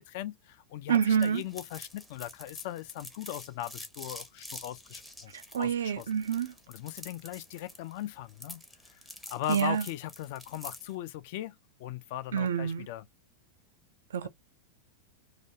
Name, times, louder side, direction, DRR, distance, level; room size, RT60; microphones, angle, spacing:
voice 1, 0.0-5.3 5.6-6.0 6.7-8.6 9.3-11.5 11.8-13.0 14.2-14.3, left 12 dB, 50° left, 0.4 m, -39 dB
voice 2, 0.9-1.4 5.3-6.5 9.5-9.9 12.3-12.9 14.1-14.3, right 8 dB, 65° right, 0.3 m, -27 dB
sound 1, 1.2-10.9, left 1 dB, 5° left, 0.6 m, -47 dB
2.4 x 2.3 x 2.8 m
figure-of-eight pair, 90°, 0 cm